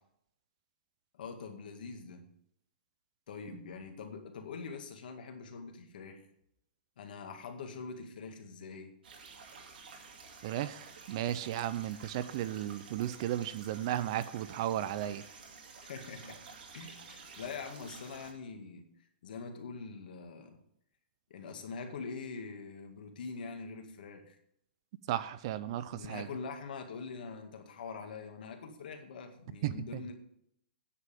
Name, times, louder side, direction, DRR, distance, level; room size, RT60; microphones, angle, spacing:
voice 1, 1.1-2.2 3.3-6.3 7.0-8.9 15.8-16.4 16.7-18.8 19.2-20.6 21.3-24.4 25.9-30.1, left 5 dB, 60° left, 5 dB, 2.0 m, -44 dB
sound 1, 9.0-18.3, right 5 dB, 70° right, 2.6 m, -51 dB
voice 2, 10.4-15.2 25.1-26.3 29.6-30.0, right 12 dB, 35° right, 15 dB, 0.4 m, -35 dB
9.7 x 5.6 x 8.3 m, 0.74 s
hypercardioid pair, 170°, 5 cm